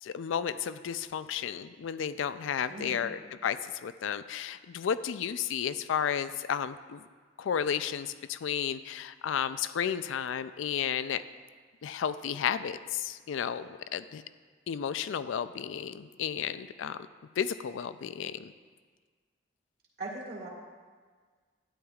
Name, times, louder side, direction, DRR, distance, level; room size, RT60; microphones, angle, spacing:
voice 1, 0.0-7.0 7.4-11.2 11.8-14.2 14.7-17.0 17.4-18.5, left 8 dB, 80° left, 14 dB, 0.3 m, -33 dB
voice 2, 2.7-3.1 20.0-20.5, right 2 dB, 55° right, -6 dB, 1.6 m, -39 dB
12.5 x 9.7 x 2.4 m, 1.5 s
head